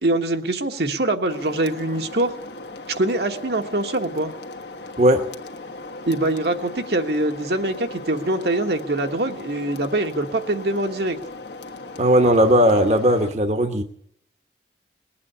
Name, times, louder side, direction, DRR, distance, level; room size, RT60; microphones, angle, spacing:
voice 1, 0.0-2.3 3.0-4.3 6.0-11.2, right 2 dB, 70° right, 5 dB, 1.3 m, -23 dB
sound 1, 1.3-13.3, left 2 dB, 75° left, 1.4 m, -38 dB
voice 2, 12.0-13.8, right 1 dB, 40° right, 7 dB, 1.0 m, -17 dB
20.0 x 8.6 x 8.2 m, 0.69 s
head